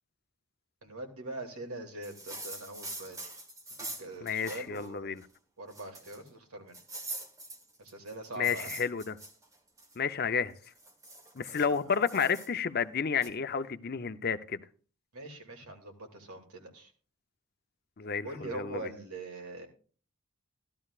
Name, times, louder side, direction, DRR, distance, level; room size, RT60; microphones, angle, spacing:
voice 1, 0.8-3.3 3.7-5.2 5.6-6.8 7.8-8.7 11.5-11.9 15.1-16.9 18.2-19.7, right 2 dB, 85° right, 2.4 m, -43 dB
sound 1, 2.0-4.9 5.2-5.3 5.7-6.3 6.7-10.0 10.5-12.5 13.2-13.3, right 2 dB, 15° right, 1.1 m, -44 dB
voice 2, 4.2-5.3 8.4-9.2 10.0-10.6 11.3-14.6 18.0-18.9, left 6 dB, 45° left, 0.6 m, -31 dB
15.0 x 12.5 x 2.4 m
head